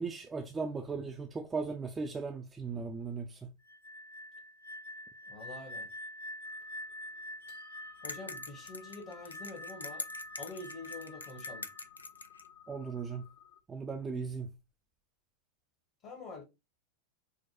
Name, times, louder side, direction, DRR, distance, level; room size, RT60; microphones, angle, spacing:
voice 1, 0.0-3.5 12.7-13.2 13.7-14.5, right 4 dB, 15° right, 0.3 m, -37 dB
sound 1, 3.6-11.9, left 1 dB, 90° right, 1.7 m, -46 dB
voice 2, 5.3-5.9 8.0-10.1 10.4-11.6 16.0-16.4, left 3 dB, 35° left, 1.0 m, -46 dB
sound 2, 6.4-13.6, left 9 dB, 60° left, 1.0 m, -57 dB
sound 3, 8.0-12.5, left 3 dB, 80° left, 0.4 m, -44 dB
4.4 x 2.1 x 3.0 m
figure-of-eight pair, 90°, 0 cm